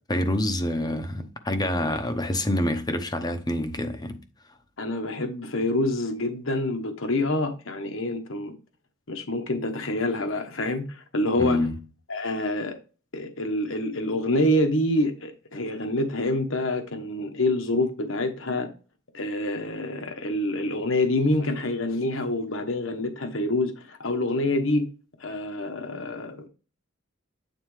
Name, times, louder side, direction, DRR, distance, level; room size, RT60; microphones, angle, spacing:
voice 1, 0.1-4.2 11.4-11.7, left 1 dB, 20° left, 0.9 m, -26 dB
voice 2, 4.8-8.5 9.1-11.6 12.1-12.8 13.1-18.7 19.1-24.9 25.2-26.5, left 1 dB, 65° left, 1.2 m, -26 dB
9.3 x 4.2 x 3.3 m
head